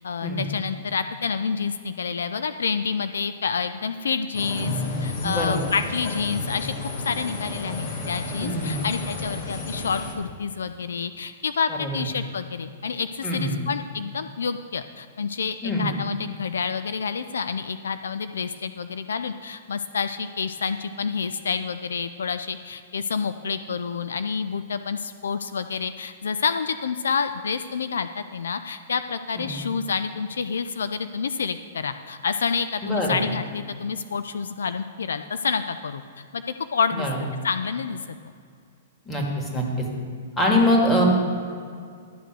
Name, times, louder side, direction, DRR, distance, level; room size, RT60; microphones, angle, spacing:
voice 1, 0.0-37.1 37.4-38.0, left 5 dB, 75° left, 11 dB, 0.4 m, -28 dB
sound 1, 4.3-10.1, left 2 dB, 45° left, 2.0 m, -32 dB
voice 2, 5.2-5.7 8.4-8.8 11.8-12.1 13.2-13.6 15.6-15.9 29.3-29.6 32.8-33.2 36.9-37.2 39.1-39.9 40.4-41.1, left 1 dB, 15° left, -1 dB, 2.4 m, -24 dB
12.0 x 6.9 x 6.2 m, 2.2 s
hypercardioid pair, 115°, 0 cm